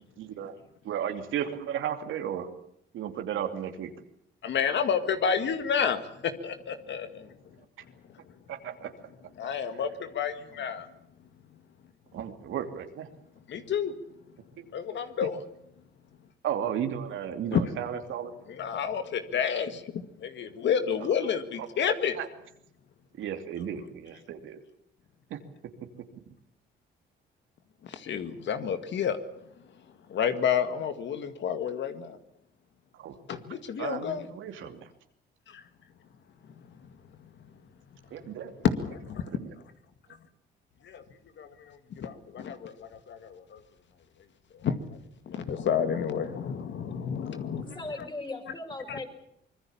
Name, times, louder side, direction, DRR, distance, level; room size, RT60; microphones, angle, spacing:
voice 1, 0.2-0.5 0.8-2.5 2.9-3.9 8.5-8.9 12.1-13.1 14.6-14.7 16.4-18.3 22.2-22.3 23.2-24.6 25.3-25.4 33.0-33.1 33.8-34.8 38.1-38.5 39.3-39.5, right 9 dB, 80° right, 6 dB, 2.8 m, -34 dB
voice 2, 4.4-7.3 9.4-10.9 13.5-13.9 14.7-15.4 17.5-17.6 18.5-22.2 27.8-29.2 30.1-32.2 33.3-34.3 35.5-35.6 38.6-39.3 40.8-41.0 41.4-43.6 44.5-44.8 45.3-47.8 48.9-49.0, left 7 dB, 65° left, 9 dB, 2.0 m, -30 dB
voice 3, 47.5-49.0, left 2 dB, 25° left, 4 dB, 6.2 m, -38 dB
25.0 x 21.0 x 7.2 m, 0.74 s
cardioid pair, 90°, 20 cm